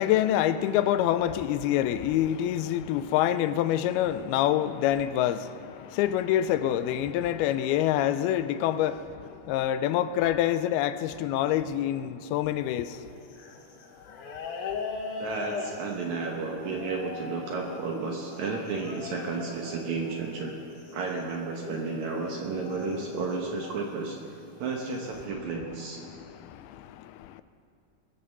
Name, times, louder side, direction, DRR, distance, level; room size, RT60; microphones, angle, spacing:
voice 1, 0.0-13.0 26.1-27.4, left 11 dB, 85° left, 2.4 m, -26 dB
sound 1, 12.6-23.8 24.6-25.3, left 4 dB, 60° left, 2.5 m, -41 dB
voice 2, 15.2-20.5 20.9-24.2 24.6-26.0, right 4 dB, 65° right, 2.0 m, -32 dB
22.0 x 7.7 x 6.8 m
omnidirectional pair, 4.5 m